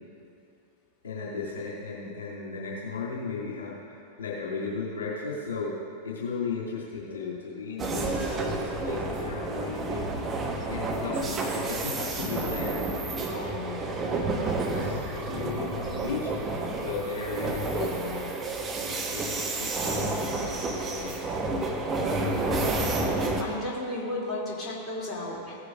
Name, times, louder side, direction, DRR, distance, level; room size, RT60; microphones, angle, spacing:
voice 1, 1.0-3.7 4.2-5.7 6.0-12.7 13.3-13.9 14.2-16.3 16.8-18.3 19.1-21.1, left 5 dB, 65° left, -7 dB, 2.7 m, -36 dB
between two train carriages II, 7.8-23.4, right 2 dB, 20° right, 1.1 m, -30 dB
voice 2, 22.4-25.6, left 1 dB, 20° left, -6 dB, 2.8 m, -35 dB
17.0 x 9.7 x 2.6 m, 2.6 s
figure-of-eight pair, 90°, 0 cm